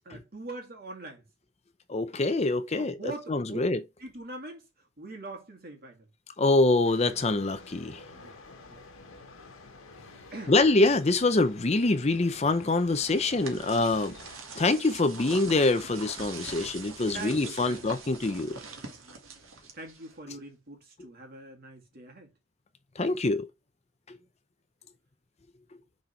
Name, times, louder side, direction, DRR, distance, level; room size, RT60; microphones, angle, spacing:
voice 1, 0.0-1.2 2.8-3.6 4.0-6.1 8.1-8.8 10.3-10.6 17.1-17.8 18.7-22.3, right 2 dB, 45° right, 2.2 m, -43 dB
voice 2, 1.9-3.8 6.4-8.0 10.5-14.2 14.6-18.6 21.0-21.1 23.0-23.5 24.1-24.2 25.7-25.8, left 2 dB, 30° left, 0.6 m, -25 dB
sound 1, 6.8-14.4, left 3 dB, 85° left, 1.5 m, -49 dB
sound 2, 12.5-20.3, right 4 dB, 85° right, 1.8 m, -43 dB
6.4 x 4.3 x 4.6 m
head